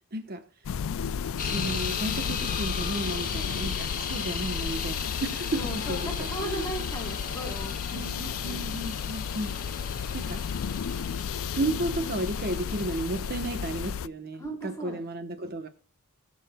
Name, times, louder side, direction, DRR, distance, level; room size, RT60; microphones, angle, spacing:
voice 1, 0.1-0.4 1.4-6.7 7.9-9.8 10.1-10.4 11.5-15.7, right 2 dB, 45° right, 1.0 m, -33 dB
sound 1, 0.6-14.1, left 7 dB, 60° left, 0.4 m, -33 dB
sound 2, 1.4-13.9, left 6 dB, 40° left, 1.7 m, -37 dB
voice 2, 5.6-8.2 8.4-8.6 9.8-9.9 14.4-15.0, right 1 dB, 15° left, 3.9 m, -37 dB
21.0 x 7.3 x 2.2 m
head